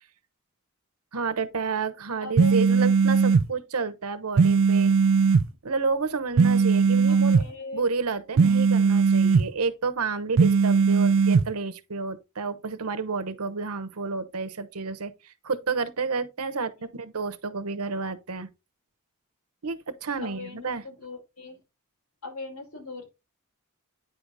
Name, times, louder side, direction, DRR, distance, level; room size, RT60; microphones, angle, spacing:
voice 1, 1.1-4.9 5.6-7.4 7.7-18.5 19.6-20.8, right 4 dB, 75° right, 0.9 m, -30 dB
voice 2, 2.2-2.8 7.1-7.9 16.8-16.9 20.2-21.6 22.2-23.0, left 2 dB, 85° left, 4.8 m, -39 dB
sound 1, 2.4-3.5 4.4-5.5 6.4-7.5 8.4-9.5 10.4-11.5, right 5 dB, 60° right, 0.4 m, -19 dB
9.7 x 4.8 x 4.0 m
head